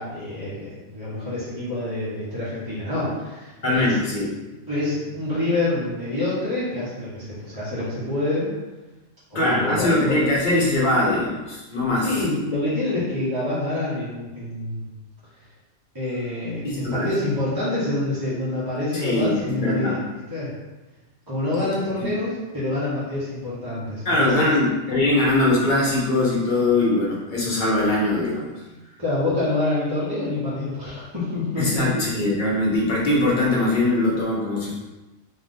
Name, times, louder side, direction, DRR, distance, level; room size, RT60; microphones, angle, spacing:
voice 1, 0.0-4.0 4.7-8.5 9.3-10.3 12.0-14.9 15.9-20.6 21.3-24.5 29.0-32.1, left 2 dB, 20° right, -10 dB, 1.1 m, -27 dB
voice 2, 3.6-4.3 9.3-12.1 16.6-17.1 19.0-20.0 22.0-22.1 24.0-28.5 31.6-34.7, left 2 dB, 40° left, -5 dB, 1.2 m, -21 dB
3.9 x 3.1 x 3.7 m, 1.1 s
omnidirectional pair, 1.3 m